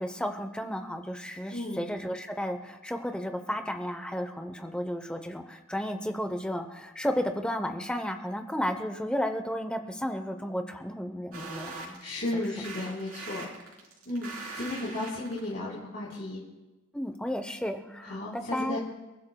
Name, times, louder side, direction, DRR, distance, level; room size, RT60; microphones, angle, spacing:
voice 1, 0.0-12.0 12.3-12.7 16.9-18.8, equal, 5° left, 7 dB, 0.8 m, -33 dB
voice 2, 1.5-1.8 12.0-13.5 14.1-16.4 18.0-18.8, left 1 dB, 55° left, -8 dB, 3.9 m, -34 dB
sound 1, 11.3-15.5, right 3 dB, 90° right, 3.8 m, -41 dB
29.5 x 15.0 x 2.3 m, 1.1 s
head